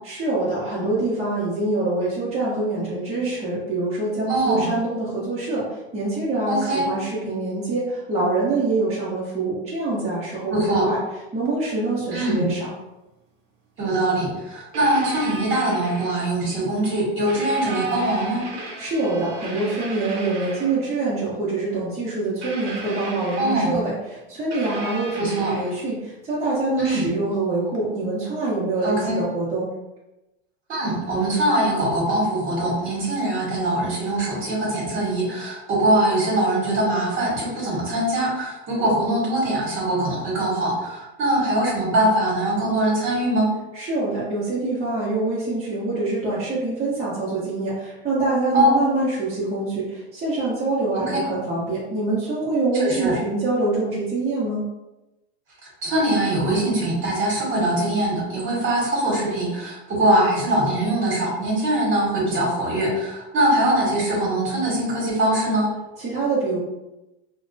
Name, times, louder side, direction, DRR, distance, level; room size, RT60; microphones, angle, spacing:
voice 1, 0.0-11.0 11.3-12.7 18.8-29.7 43.7-54.6 66.0-66.6, right 2 dB, 20° right, -9 dB, 0.8 m, -25 dB
voice 2, 4.3-4.7 6.5-6.9 10.5-10.9 12.1-12.5 13.8-18.4 23.4-23.8 25.2-25.5 26.8-27.1 28.8-29.2 30.7-43.5 48.5-48.7 51.0-51.1 52.7-53.1 55.8-65.7, right 1 dB, 40° right, -4 dB, 1.2 m, -22 dB
sound 1, 11.4-11.5 12.3-12.5 14.1-14.2 14.7-16.4 17.3-20.9 22.4-23.9 24.5-26.0 27.7-27.9, right 2 dB, 60° right, 0.8 m, -36 dB
2.6 x 2.2 x 2.6 m, 0.98 s
supercardioid pair, 120°, 31 cm